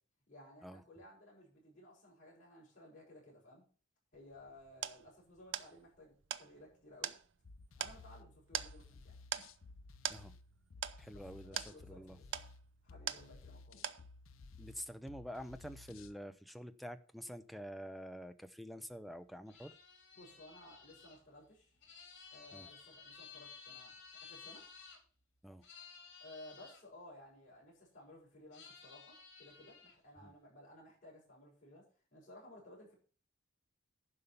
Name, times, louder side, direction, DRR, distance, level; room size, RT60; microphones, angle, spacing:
voice 1, 0.3-3.6 4.1-7.1 7.8-9.1 11.1-12.0 12.8-13.9 20.2-21.8 22.3-24.6 26.2-31.8 32.1-32.9, left 1 dB, 40° left, 6.2 m, -57 dB
sound 1, 4.1-13.6 13.8-14.4, right 9 dB, 60° right, 0.6 m, -44 dB
sound 2, 7.4-16.2, left 3 dB, 80° left, 0.7 m, -56 dB
voice 2, 11.0-12.2 14.6-19.7 22.5-22.7 25.4-25.7 30.2-30.3, equal, ahead, 0.5 m, -48 dB
sound 3, 19.5-25.0 25.6-26.8 28.5-30.0, left 6 dB, 60° left, 4.3 m, -55 dB
11.0 x 5.5 x 6.8 m
head